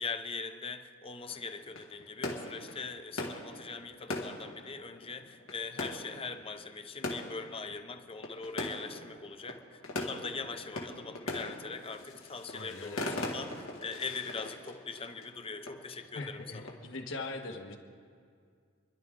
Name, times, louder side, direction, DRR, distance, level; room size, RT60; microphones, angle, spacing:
voice 1, 0.0-16.7, left 4 dB, 25° left, 8 dB, 0.7 m, -41 dB
sound 1, 1.3-17.0, left 2 dB, 80° left, 2.0 m, -41 dB
voice 2, 12.5-13.3 16.1-17.8, left 3 dB, 65° left, 3 dB, 1.5 m, -41 dB
29.0 x 11.0 x 3.7 m, 2.1 s
head